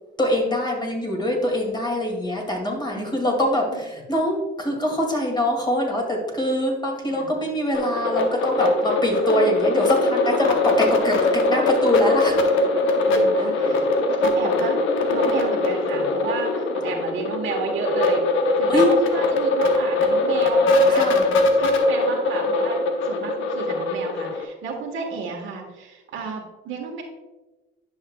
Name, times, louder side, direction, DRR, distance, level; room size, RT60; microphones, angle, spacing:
voice 1, 0.2-11.2 11.5-12.3 13.4-13.5 18.7-18.9 20.9-21.3, left 1 dB, 20° left, 0 dB, 2.3 m, -23 dB
voice 2, 2.9-3.3 3.7-3.8 7.1-7.3 13.1-13.9 14.2-14.8 15.1-18.3 18.6-21.1 21.5-22.8 23.0-27.0, right 5 dB, 80° right, 1 dB, 1.4 m, -32 dB
sound 1, 7.7-24.4, left 2 dB, 80° left, 0.9 m, -21 dB
10.5 x 6.4 x 2.3 m, 1.1 s
cardioid pair, 90°, 20 cm